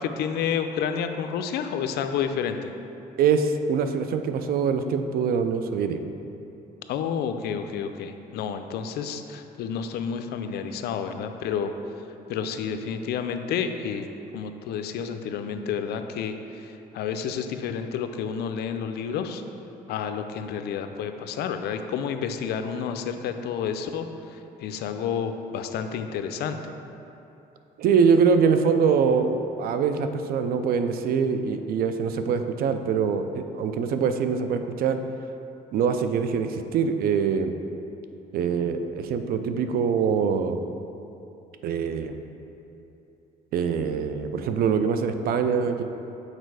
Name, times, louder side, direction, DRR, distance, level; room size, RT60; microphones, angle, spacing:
voice 1, 0.0-2.7 6.9-11.7 12.3-14.0 14.3-19.4 19.9-26.6, left 7 dB, 75° left, 8 dB, 0.5 m, -30 dB
voice 2, 3.2-6.0 27.8-35.0 35.7-37.5 38.3-40.6 41.6-42.2 43.5-45.8, right 6 dB, 65° right, 8 dB, 0.5 m, -24 dB
6.6 x 4.3 x 4.7 m, 2.9 s
cardioid pair, 110°, 17 cm